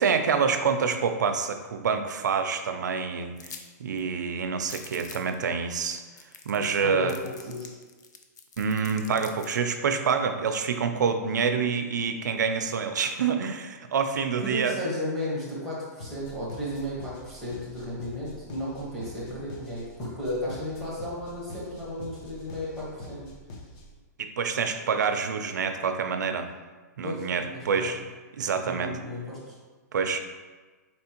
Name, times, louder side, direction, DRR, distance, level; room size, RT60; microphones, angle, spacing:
voice 1, 0.0-3.3 3.8-6.0 6.5-7.2 8.6-14.8 24.2-26.5 27.0-28.0 28.4-29.0 29.9-30.2, right 6 dB, 85° right, 7 dB, 0.4 m, -27 dB
sound 1, 3.4-3.7 4.0-4.1 4.6-5.3 5.9-6.0 6.2-6.7 7.1-9.6, left 6 dB, 85° left, 0.5 m, -45 dB
voice 2, 6.6-7.1 7.5-7.7 14.4-23.3 27.0-27.3 27.7-28.0 28.6-29.5, equal, 5° left, -8 dB, 0.8 m, -34 dB
sound 2, 16.0-24.0, left 2 dB, 20° left, 0.4 m, -45 dB
4.3 x 3.4 x 2.9 m, 1.3 s
hypercardioid pair, 175°, 9 cm